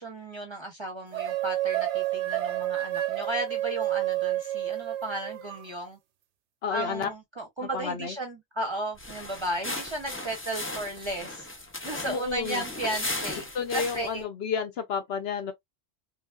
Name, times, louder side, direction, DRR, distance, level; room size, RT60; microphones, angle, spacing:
voice 1, 0.0-6.0 6.7-11.5 11.8-13.5 13.7-14.3, right 1 dB, 30° right, 0.6 m, -34 dB
sound 1, 1.1-5.6, right 14 dB, 90° right, 0.9 m, -29 dB
voice 2, 6.6-7.1 7.7-8.2 12.1-12.6 13.5-15.5, left 6 dB, 65° left, 0.9 m, -31 dB
sound 2, 9.0-14.2, left 2 dB, 20° left, 0.3 m, -36 dB
3.2 x 2.3 x 2.3 m
omnidirectional pair, 1.2 m